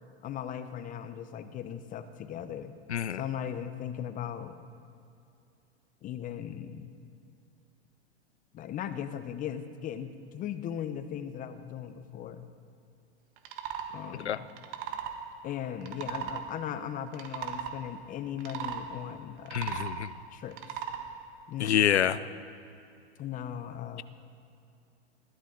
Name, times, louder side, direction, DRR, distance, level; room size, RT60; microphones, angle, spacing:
voice 1, 0.2-2.7 3.1-4.6 6.0-6.9 8.5-12.5 13.9-14.5 15.4-19.8 20.3-20.6 21.5-21.8 23.2-24.0, left 9 dB, 25° left, 11 dB, 0.8 m, -38 dB
sound 1, 13.4-13.9 14.5-15.2 15.8-16.4 17.1-17.7 18.4-18.8 19.4-20.0 20.5-21.0, right 9 dB, 50° right, 1.7 m, -36 dB
voice 2, 19.5-20.1 21.6-22.2, left 10 dB, 80° left, 15 dB, 0.6 m, -26 dB
20.5 x 14.0 x 3.9 m, 2.6 s
hypercardioid pair, 105°, 33 cm